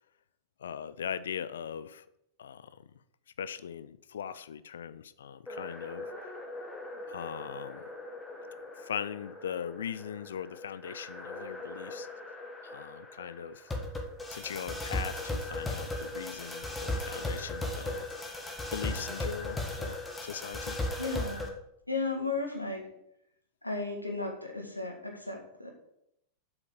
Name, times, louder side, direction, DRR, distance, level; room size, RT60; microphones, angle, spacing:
voice 1, 0.6-2.0 2.4-2.8 3.4-6.1 7.1-7.8 8.8-12.1 12.6-13.7 14.3-18.1 18.7-20.8, left 8 dB, 65° left, 0.5 m, -40 dB
sound 1, 5.5-21.5, left 2 dB, 10° left, 1.7 m, -38 dB
voice 2, 21.0-21.5 21.9-22.9 23.6-25.7, left 3 dB, 85° left, 1.9 m, -34 dB
7.8 x 5.9 x 6.7 m
figure-of-eight pair, 90°, 0 cm